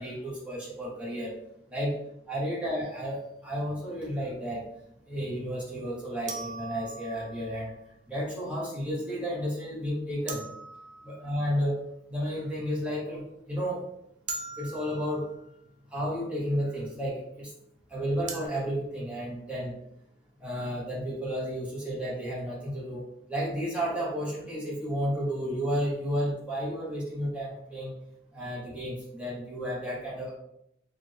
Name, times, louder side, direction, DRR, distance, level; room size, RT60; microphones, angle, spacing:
voice 1, 0.0-1.3 1.7-2.0 2.3-4.7 5.1-7.7 8.1-10.4 11.0-11.7 12.1-13.8 14.6-15.3 15.9-17.5 17.9-19.7 20.4-23.0 23.3-27.9 28.3-30.3, equal, 5° right, -7 dB, 1.2 m, -32 dB
sound 1, 2.8-3.0 6.3-7.6 10.3-11.7 14.3-15.5 18.3-18.5, right 4 dB, 40° right, 0.5 m, -40 dB
4.1 x 2.5 x 3.4 m, 0.78 s
head